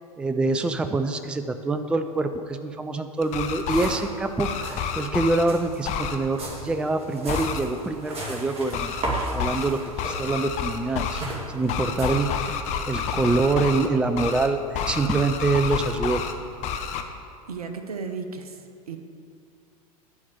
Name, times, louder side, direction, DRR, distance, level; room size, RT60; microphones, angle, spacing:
voice 1, 0.2-11.2 11.5-12.3 12.9-16.2, right 3 dB, 5° right, 8 dB, 0.4 m, -25 dB
sound 1, 3.2-4.0 4.4-5.4 5.8-6.2 7.3-7.6 8.7-9.0 9.4-9.7 10.0-11.2 11.7-13.9 14.2-14.5 14.7-16.3 16.6-17.0, left 7 dB, 35° left, 0.8 m, -29 dB
sound 2, 3.2-3.3 3.5-4.2 4.4-4.9 5.4-12.1, right 1 dB, 30° right, 2.1 m, -34 dB
voice 2, 17.5-19.0, right 5 dB, 75° right, 7 dB, 0.9 m, -35 dB
10.5 x 4.6 x 7.8 m, 2.5 s
figure-of-eight pair, 85°, 19 cm